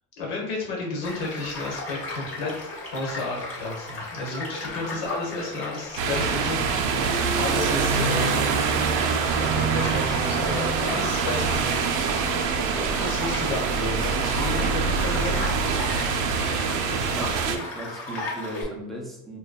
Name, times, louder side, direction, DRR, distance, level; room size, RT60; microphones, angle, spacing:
voice 1, 0.2-2.5 2.9-6.9 7.3-8.5 9.5-11.9 13.0-15.4, left 2 dB, 80° left, -2 dB, 1.1 m, -32 dB
Child speech kid speaking / Stream / Car passing by, 1.0-18.6, left 2 dB, 40° left, 0.8 m, -36 dB
sound 1, 6.0-17.6, right 5 dB, 70° right, 0.5 m, -25 dB
voice 2, 16.9-19.4, equal, ahead, -2 dB, 0.3 m, -36 dB
2.7 x 2.1 x 2.2 m, 0.90 s
supercardioid pair, 110°, 35 cm